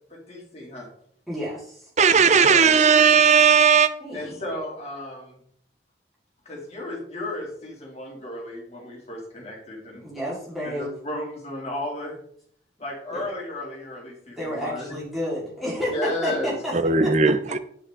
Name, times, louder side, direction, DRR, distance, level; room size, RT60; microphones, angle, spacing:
voice 1, 0.1-0.9 2.4-2.8 4.1-5.4 6.4-10.1 10.6-12.2 12.8-15.0 15.9-16.5, left 1 dB, 35° left, -2 dB, 3.1 m, -34 dB
voice 2, 1.3-1.9 4.0-4.4 10.0-10.9 13.1-13.3 14.4-16.7 17.0-17.3, equal, ahead, -8 dB, 4.2 m, -31 dB
voice 3, 2.0-3.9 16.7-17.6, right 6 dB, 35° right, 11 dB, 0.6 m, -17 dB
8.5 x 8.2 x 3.8 m, 0.65 s
head